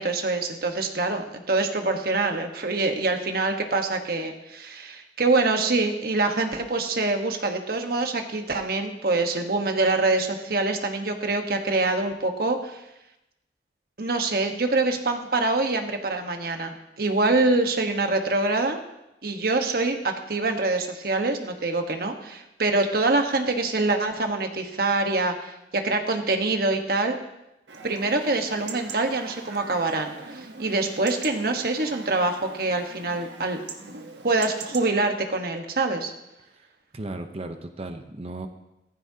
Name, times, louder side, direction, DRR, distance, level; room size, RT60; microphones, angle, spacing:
voice 1, 0.0-12.8 14.0-18.8 19.2-27.2 27.8-33.6 34.2-36.1, right 3 dB, 55° right, 5 dB, 1.3 m, -25 dB
Chatter / Livestock farm animals working animals / Chirp tweet, 27.7-34.9, right 4 dB, 80° right, 1.2 m, -41 dB
voice 2, 36.9-38.5, right 2 dB, 35° right, 7 dB, 0.8 m, -35 dB
15.5 x 14.5 x 2.8 m, 0.91 s
head